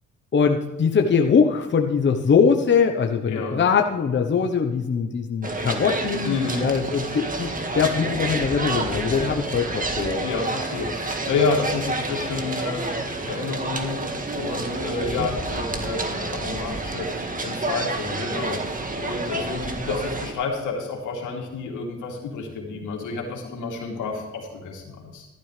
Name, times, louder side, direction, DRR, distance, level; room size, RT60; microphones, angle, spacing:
voice 1, 0.3-10.2 15.2-15.3, left 6 dB, 40° left, 4 dB, 1.1 m, -22 dB
voice 2, 3.3-3.6 6.2-6.7 8.9-9.2 10.2-25.3, left 4 dB, 80° left, 0 dB, 3.1 m, -30 dB
sound 1, 5.4-20.3, right 2 dB, 25° right, 1.8 m, -29 dB
14.0 x 12.0 x 3.4 m, 1.1 s
cardioid pair, 90°, 30 cm